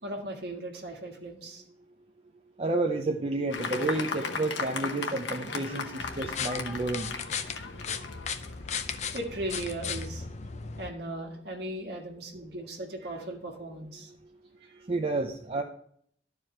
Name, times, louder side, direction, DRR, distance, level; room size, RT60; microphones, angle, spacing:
voice 1, 0.0-1.6 9.1-10.3 10.8-14.1 14.6-14.8, right 1 dB, 65° right, 1 dB, 1.7 m, -37 dB
voice 2, 2.6-7.1 14.9-15.6, right 2 dB, 35° right, 3 dB, 0.6 m, -30 dB
Fireworks, 3.5-9.2, left 4 dB, 85° left, 1.0 m, -36 dB
sound 1, 6.0-10.9, left 6 dB, 40° left, 0.5 m, -36 dB
11.5 x 4.9 x 4.4 m, 0.64 s
head